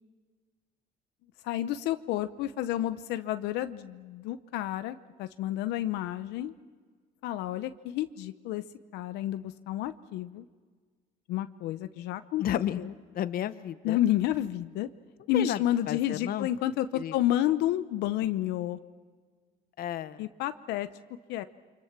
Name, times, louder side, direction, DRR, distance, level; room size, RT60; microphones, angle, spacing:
voice 1, 1.4-6.5 7.2-8.6 8.9-10.5 11.3-12.4 12.8-12.9 13.8-14.9 15.3-18.8 20.2-20.9 21.3-21.4, left 13 dB, 90° left, 11 dB, 0.8 m, -30 dB
voice 2, 12.4-12.9 13.1-14.0 15.3-15.6 15.9-16.5 16.9-17.2 19.8-20.2, left 11 dB, 60° left, 13 dB, 0.9 m, -32 dB
29.0 x 25.0 x 6.0 m, 1.5 s
cardioid pair, 110°, 17 cm